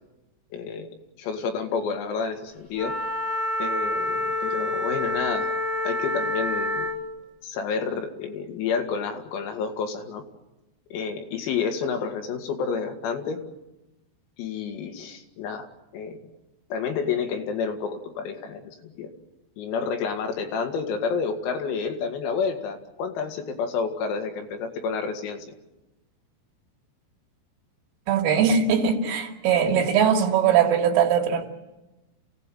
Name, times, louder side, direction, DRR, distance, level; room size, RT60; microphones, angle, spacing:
voice 1, 0.5-0.9 1.2-3.0 3.6-5.5 5.8-6.9 7.4-10.2 10.9-13.4 14.4-15.7 15.9-16.2 16.7-19.1 19.6-25.5, left 5 dB, 85° left, 4.8 m, -29 dB
Wind instrument woodwind instrument, 2.7-7.0, left 1 dB, 20° left, 1.3 m, -27 dB
voice 2, 28.1-31.4, right 7 dB, 70° right, 4.4 m, -21 dB
28.5 x 17.0 x 9.1 m
omnidirectional pair, 6.0 m